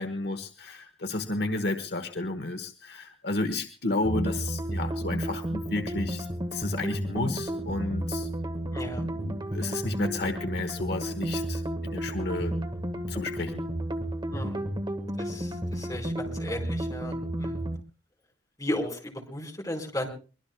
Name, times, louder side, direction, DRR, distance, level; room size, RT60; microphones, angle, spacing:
voice 1, 0.0-6.3 6.5-8.3 9.0-12.6 13.1-13.6, left 2 dB, 65° left, 7 dB, 1.2 m, -32 dB
sound 1, 4.0-17.8, right 1 dB, 25° right, 1.5 m, -32 dB
voice 2, 8.7-9.0 14.3-14.7 15.2-17.6 18.6-20.1, left 1 dB, 20° left, 1 dB, 4.5 m, -35 dB
23.5 x 22.0 x 2.2 m, 0.36 s
head